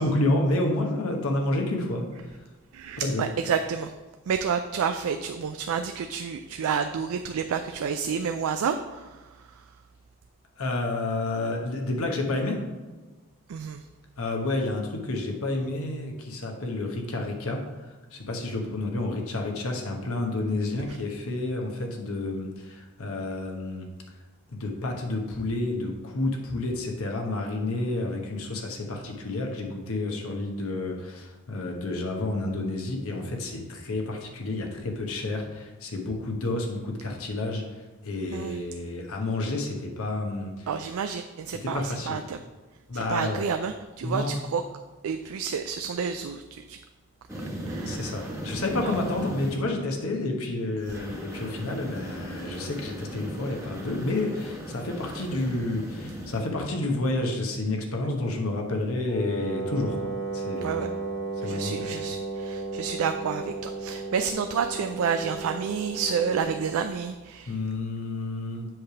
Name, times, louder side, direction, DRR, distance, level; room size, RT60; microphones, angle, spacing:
voice 1, 0.0-2.4 3.0-3.2 10.6-12.6 14.2-23.9 24.5-40.7 41.6-42.2 42.9-43.4 44.0-44.4 47.8-60.9 61.4-62.0 67.5-68.7, left 2 dB, 75° left, 1 dB, 1.1 m, -30 dB
voice 2, 2.7-3.9 4.3-9.6 13.5-13.9 38.3-38.6 40.7-42.4 42.9-44.6 45.0-46.8 47.7-48.1 48.8-48.9 60.6-60.9 61.4-67.6, right 6 dB, 75° right, 7 dB, 0.3 m, -30 dB
sound 1, 47.3-49.5 50.9-56.4, right 1 dB, 15° right, 1.2 m, -37 dB
Wind instrument woodwind instrument, 59.1-66.7, right 3 dB, 40° left, 1.7 m, -34 dB
7.7 x 3.3 x 5.7 m, 1.3 s
head